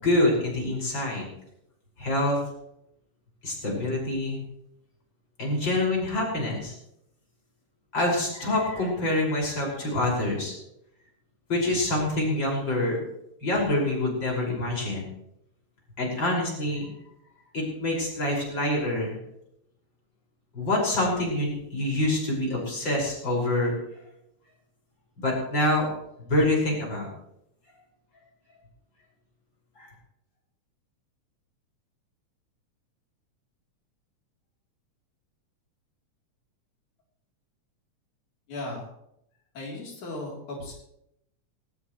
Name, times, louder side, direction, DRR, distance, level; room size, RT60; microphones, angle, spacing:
voice 1, 0.0-1.2 2.0-2.4 3.4-4.4 5.4-6.7 7.9-10.5 11.5-13.0 13.4-15.0 16.0-16.9 17.5-19.2 20.5-23.7 25.2-25.9 26.2-27.1 29.7-29.9, left 1 dB, 35° left, -2 dB, 6.4 m, -26 dB
voice 2, 38.5-38.9 39.5-40.7, left 2 dB, 85° left, -2 dB, 5.1 m, -36 dB
20.0 x 18.5 x 3.2 m, 0.78 s
omnidirectional pair, 3.3 m